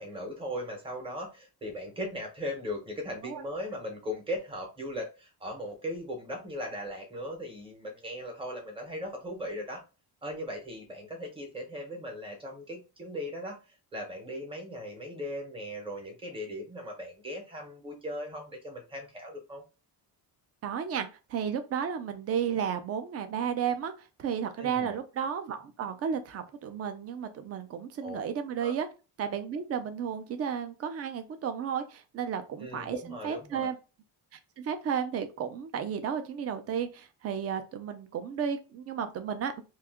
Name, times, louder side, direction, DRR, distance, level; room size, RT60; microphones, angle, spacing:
voice 1, 0.0-9.8 10.2-13.6 13.9-19.6 24.6-25.0 28.0-28.2 28.6-28.7 32.6-33.7, equal, 15° right, 2 dB, 0.8 m, -38 dB
voice 2, 20.6-28.9 29.2-33.8 34.6-39.6, right 7 dB, 40° right, 9 dB, 0.4 m, -33 dB
2.8 x 2.3 x 3.5 m, 0.30 s
cardioid pair, 180°, 40 cm